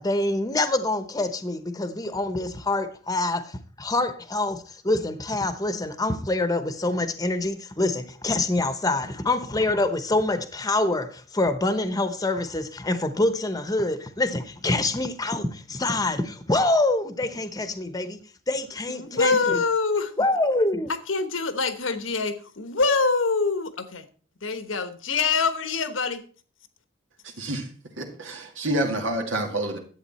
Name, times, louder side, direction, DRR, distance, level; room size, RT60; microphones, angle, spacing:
voice 1, 0.0-18.2 18.5-19.6 20.2-20.9, left 2 dB, 20° left, 0.9 m, -26 dB
voice 2, 18.9-20.1 20.9-24.0 24.4-26.2, left 4 dB, 90° left, 1.2 m, -25 dB
voice 3, 27.2-27.7 28.0-29.8, right 1 dB, 90° right, 2.1 m, -28 dB
11.5 x 8.2 x 4.2 m
head